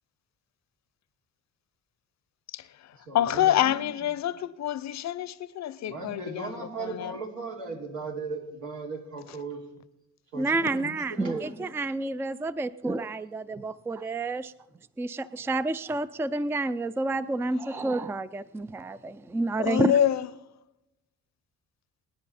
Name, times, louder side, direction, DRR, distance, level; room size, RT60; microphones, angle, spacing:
voice 1, 2.5-7.1 17.7-17.8 19.6-20.3, left 11 dB, 65° left, 0.7 m, -27 dB
voice 2, 3.1-3.8 5.8-9.7 10.3-11.8 13.0-13.1, right 3 dB, 80° right, 3.0 m, -38 dB
voice 3, 10.3-14.5 15.0-19.9, right 2 dB, 10° right, 0.4 m, -29 dB
24.0 x 9.9 x 4.3 m
cardioid pair, 90°, 30 cm